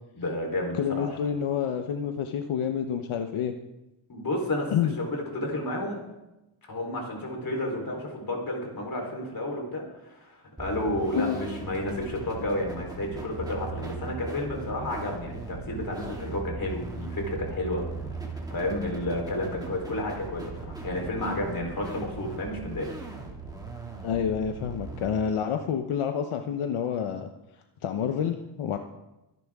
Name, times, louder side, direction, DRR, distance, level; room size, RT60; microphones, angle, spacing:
voice 1, 0.1-1.1 4.1-4.7 5.0-6.0 6.7-17.8 18.5-22.9, left 1 dB, 45° left, 1 dB, 3.8 m, -31 dB
voice 2, 0.7-3.5 4.7-4.9 11.1-11.4 24.0-27.3 27.8-28.8, left 8 dB, 80° left, 6 dB, 1.0 m, -28 dB
sound 1, 10.6-25.1, right 3 dB, 10° right, 2.3 m, -39 dB
23.5 x 10.5 x 3.6 m, 0.97 s
wide cardioid pair, 150°, 49 cm